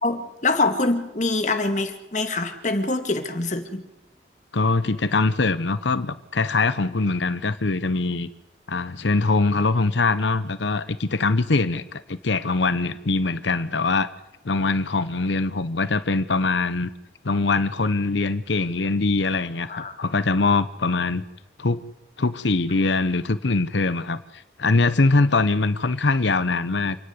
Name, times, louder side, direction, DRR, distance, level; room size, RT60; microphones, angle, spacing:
voice 1, 0.0-3.8 19.7-20.0, left 2 dB, 40° left, 7 dB, 2.1 m, -24 dB
voice 2, 4.5-8.3 8.7-14.1 14.4-16.9 17.2-21.2 21.6-21.8 22.2-27.0, left 3 dB, 75° left, 13 dB, 0.9 m, -22 dB
27.5 x 9.8 x 9.6 m, 1.0 s
head